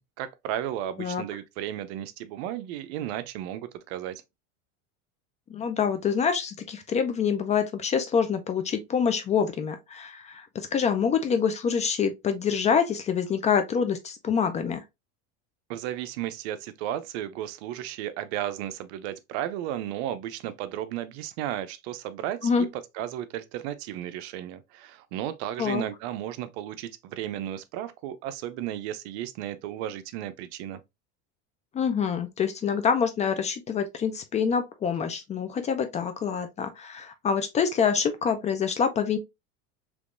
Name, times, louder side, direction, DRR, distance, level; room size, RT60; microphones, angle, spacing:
voice 1, 0.0-4.2 15.7-22.7 22.9-30.8, right 12 dB, 75° right, 0.6 m, -34 dB
voice 2, 5.5-14.8 22.4-22.7 25.6-25.8 31.7-39.2, left 6 dB, 20° left, 0.3 m, -26 dB
3.5 x 3.0 x 2.5 m
supercardioid pair, 135°, 33 cm